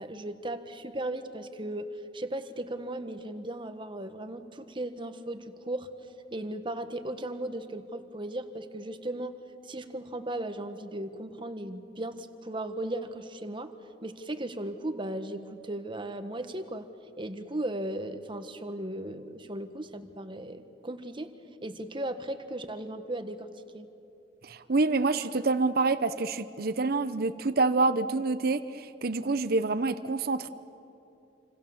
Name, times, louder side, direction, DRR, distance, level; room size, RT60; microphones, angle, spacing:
voice 1, 0.0-1.9 2.1-5.9 6.3-9.4 9.6-13.7 14.0-16.9 17.2-21.3 21.6-23.5 23.7-23.9, right 1 dB, 30° right, 8 dB, 1.4 m, -36 dB
voice 2, 24.4-30.5, right 3 dB, 55° right, 12 dB, 0.8 m, -27 dB
27.5 x 26.0 x 7.2 m, 2.7 s
head